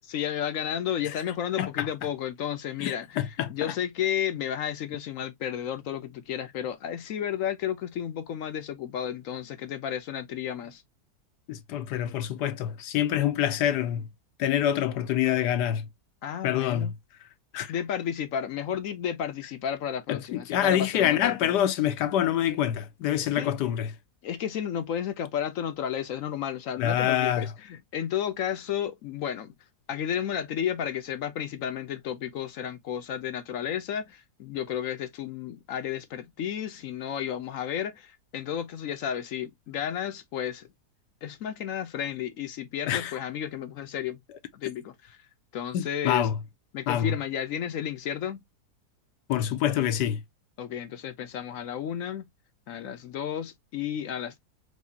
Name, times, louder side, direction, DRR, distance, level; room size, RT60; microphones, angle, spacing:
voice 1, 0.1-10.8 16.2-16.9 17.7-21.5 23.4-23.5 24.2-29.5 29.9-40.7 41.2-44.2 44.5-45.2 45.5-46.3 46.7-48.4 50.6-52.3 52.7-54.4, left 9 dB, 65° left, 0.9 m, -32 dB
voice 2, 2.8-3.7 11.5-14.1 14.4-15.8 16.4-16.9 17.5-17.7 20.1-23.9 26.8-27.5 42.9-43.1 45.7-46.4 46.9-47.1 49.3-50.2, left 11 dB, 80° left, 1.3 m, -26 dB
4.8 x 2.7 x 2.6 m
omnidirectional pair, 1.7 m